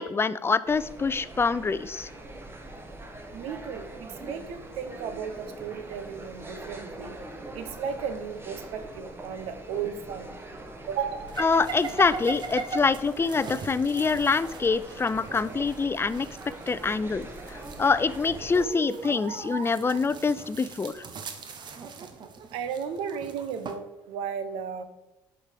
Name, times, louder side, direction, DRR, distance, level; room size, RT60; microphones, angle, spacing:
voice 1, 0.0-2.1 11.4-16.3 16.7-21.0, left 4 dB, 25° left, 16 dB, 0.5 m, -25 dB
sound 1, 0.6-18.7, right 2 dB, 25° right, 1.4 m, -43 dB
voice 2, 3.3-7.2 7.5-10.4 10.9-11.3 22.5-24.8, right 7 dB, 75° right, 9 dB, 0.8 m, -34 dB
sound 2, 11.3-23.8, right 5 dB, 50° right, 1.0 m, -40 dB
7.2 x 5.3 x 5.0 m, 0.94 s
supercardioid pair, 70°, 10 cm